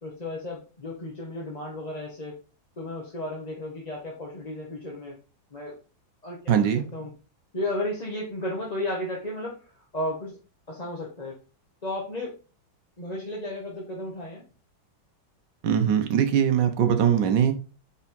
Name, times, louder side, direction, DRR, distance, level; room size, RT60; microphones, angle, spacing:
voice 1, 0.0-2.3 2.8-5.2 5.5-5.7 6.2-7.1 7.5-10.4 10.7-11.4 11.8-12.3 13.0-14.4, left 1 dB, 25° left, -3 dB, 1.3 m, -34 dB
voice 2, 6.5-6.8 15.6-17.5, right 8 dB, 65° right, 6 dB, 1.6 m, -21 dB
5.6 x 4.9 x 5.3 m, 0.35 s
omnidirectional pair, 2.1 m